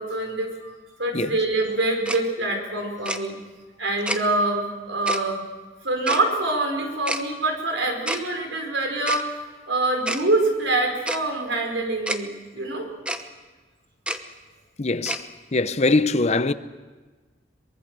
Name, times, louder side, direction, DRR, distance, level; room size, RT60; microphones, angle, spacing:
voice 1, 0.0-3.4 3.8-5.4 5.8-9.2 9.7-12.9, right 2 dB, 85° right, 5.0 m, -25 dB
Tick-tock, 2.1-2.2 3.1-3.2 4.1-4.2 5.1-5.2 6.1-6.2 7.1-7.2 8.1-8.2 9.1-9.2 10.1-10.2 11.1-11.2 12.1-12.2 13.1-13.2 14.1-14.2 15.1-15.2, right 1 dB, 5° right, 1.0 m, -27 dB
voice 2, 14.8-16.5, left 3 dB, 35° left, 0.7 m, -22 dB
23.5 x 22.0 x 6.8 m
head